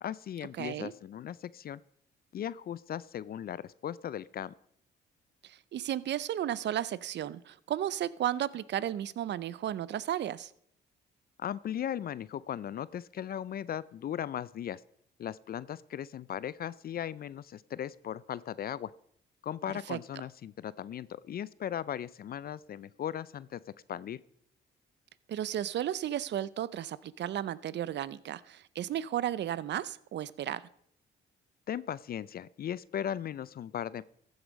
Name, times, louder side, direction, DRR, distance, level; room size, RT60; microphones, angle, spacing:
voice 1, 0.0-1.8 2.3-4.5 11.4-14.8 15.2-18.9 19.4-23.6 23.9-24.2 31.7-34.0, left 10 dB, 50° left, 19 dB, 0.4 m, -37 dB
voice 2, 0.6-0.9 5.4-10.5 19.9-20.0 25.3-30.7, right 11 dB, 60° right, 19 dB, 0.6 m, -34 dB
14.5 x 8.0 x 5.1 m, 0.67 s
cardioid pair, 90°, 20 cm